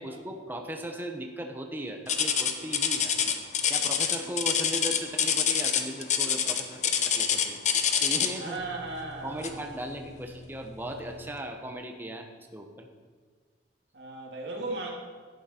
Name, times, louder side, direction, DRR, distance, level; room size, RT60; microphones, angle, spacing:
voice 1, 0.0-3.2 3.7-8.7 9.2-12.9, right 1 dB, 10° right, 4 dB, 0.8 m, -38 dB
sound 1, 2.1-8.5 9.4-9.7 10.2-10.3 11.0-11.1, left 8 dB, 40° left, 0.7 m, -26 dB
voice 2, 8.4-9.6 13.9-14.9, right 2 dB, 65° right, -1 dB, 2.2 m, -36 dB
11.0 x 9.0 x 4.4 m, 1.5 s
head